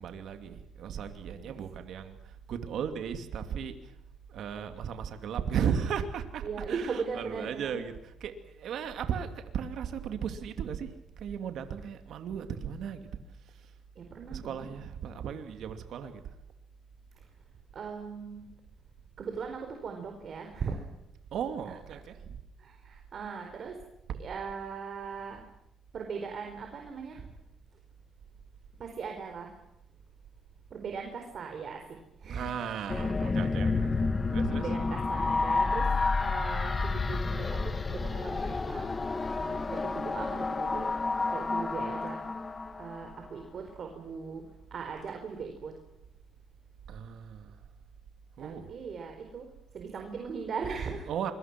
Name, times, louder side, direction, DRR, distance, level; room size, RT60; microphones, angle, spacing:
voice 1, 0.0-2.2 2.5-3.8 4.3-10.9 11.2-13.1 14.3-16.2 21.3-22.3 32.3-34.0 34.3-34.7 46.9-47.5 48.4-48.7 51.0-51.3, right 8 dB, 75° right, 7 dB, 2.7 m, -36 dB
voice 2, 6.4-7.8 14.0-14.7 17.2-17.3 17.7-18.5 19.2-20.8 21.6-21.7 22.6-23.8 24.2-25.4 25.9-27.3 28.8-29.6 30.7-33.5 34.5-35.9 36.2-39.0 39.4-40.9 41.3-42.2 42.8-44.4 44.7-45.8 48.4-49.5 49.7-51.1, right 5 dB, 55° right, 4 dB, 4.5 m, -39 dB
sound 1, 32.9-43.3, left 3 dB, 30° left, 1.8 m, -30 dB
27.0 x 23.0 x 6.1 m, 0.82 s
cardioid pair, 90°, 0 cm